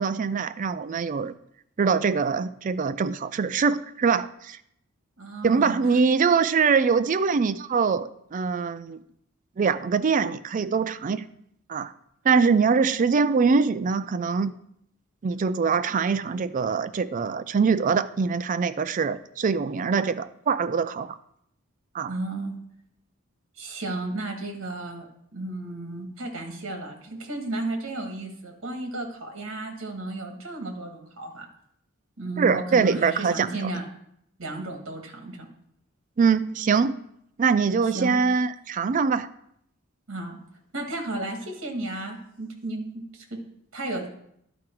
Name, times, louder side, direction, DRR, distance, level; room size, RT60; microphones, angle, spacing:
voice 1, 0.0-1.3 1.8-4.6 5.4-9.0 9.6-11.3 11.7-11.9 12.2-14.5 15.2-21.2 21.9-22.1 32.4-33.7 36.2-37.0 37.4-39.3, right 5 dB, 40° right, 14 dB, 0.4 m, -23 dB
voice 2, 5.2-5.8 22.1-22.6 23.6-31.5 32.2-33.9 34.4-35.5 37.8-38.2 40.1-40.4 40.7-43.4 43.7-44.1, right 2 dB, 65° right, 3 dB, 1.8 m, -33 dB
11.5 x 4.9 x 4.5 m, 0.72 s
head